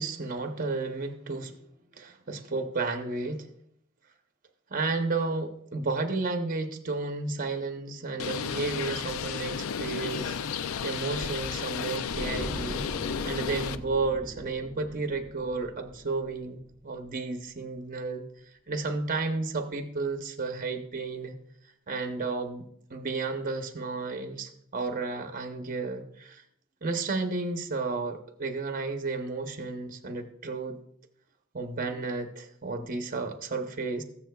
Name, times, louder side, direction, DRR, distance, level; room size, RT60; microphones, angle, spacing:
voice 1, 0.0-1.6 1.9-3.5 4.7-12.8 13.2-18.2 18.7-21.3 21.9-26.4 26.8-30.8 31.5-34.0, right 3 dB, 40° right, 5 dB, 0.9 m, -32 dB
Bird, 8.2-13.8, left 7 dB, 75° left, 0.4 m, -33 dB
sound 1, 12.1-17.2 17.4-17.7, equal, 5° left, 1.6 m, -41 dB
20.5 x 7.2 x 2.3 m, 0.72 s
head